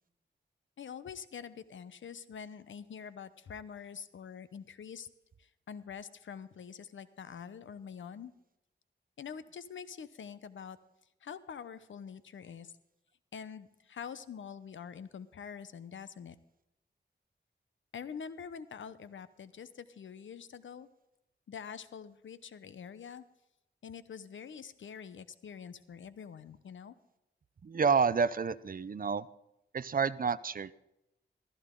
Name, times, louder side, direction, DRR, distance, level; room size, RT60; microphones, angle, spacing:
voice 1, 0.8-5.1 5.4-8.3 9.2-10.8 11.2-12.7 13.3-16.4 17.9-20.9 21.5-23.2 23.8-26.9, left 7 dB, 90° left, 14 dB, 0.9 m, -45 dB
voice 2, 27.6-29.3 29.7-30.8, right 5 dB, 50° right, 17 dB, 0.6 m, -29 dB
15.5 x 14.0 x 3.8 m, 0.87 s
wide cardioid pair, 80°, 19 cm